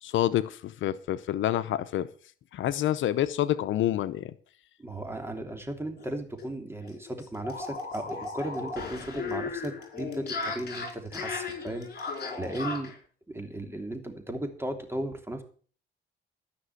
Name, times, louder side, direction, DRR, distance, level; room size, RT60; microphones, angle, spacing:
voice 1, 0.0-2.1 2.5-4.3, left 12 dB, 75° left, 13 dB, 0.8 m, -27 dB
voice 2, 4.8-12.9 13.3-15.4, right 1 dB, 10° right, 5 dB, 3.1 m, -36 dB
sound 1, 6.0-6.1 6.4-6.5 6.8-13.0, left 4 dB, 50° left, 5.1 m, -36 dB
14.0 x 6.1 x 8.0 m, 0.43 s
cardioid pair, 90°, 20 cm